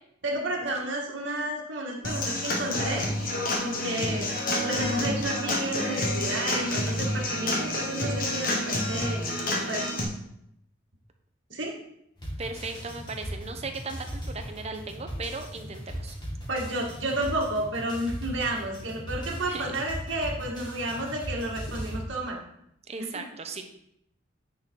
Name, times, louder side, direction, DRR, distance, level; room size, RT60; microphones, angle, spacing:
voice 1, 0.2-3.1 3.6-4.3 4.6-9.2 9.7-9.9 11.5-11.8 16.5-22.4, right 1 dB, 75° right, -2 dB, 2.0 m, -31 dB
Human voice / Acoustic guitar / Drum, 2.0-10.0, left 1 dB, 45° left, 1.5 m, -29 dB
sound 1, 12.2-22.0, equal, 25° left, 2.1 m, -38 dB
voice 2, 12.4-16.2 19.5-19.7 22.9-23.6, right 3 dB, 35° right, 5 dB, 0.8 m, -37 dB
9.5 x 4.3 x 4.6 m, 0.75 s
head